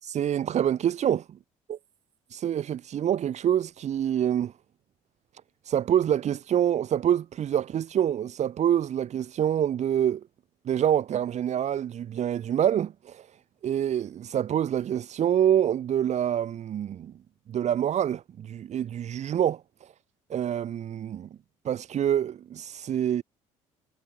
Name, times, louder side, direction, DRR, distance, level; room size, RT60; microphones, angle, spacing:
voice 1, 0.0-1.2 1.7-1.8 2.3-4.5 5.6-10.2 10.6-13.3 13.6-17.1 17.5-19.9 20.3-21.3 21.6-23.2, right 10 dB, 50° right, 1.4 m, -26 dB
hypercardioid pair, 70°, 15 cm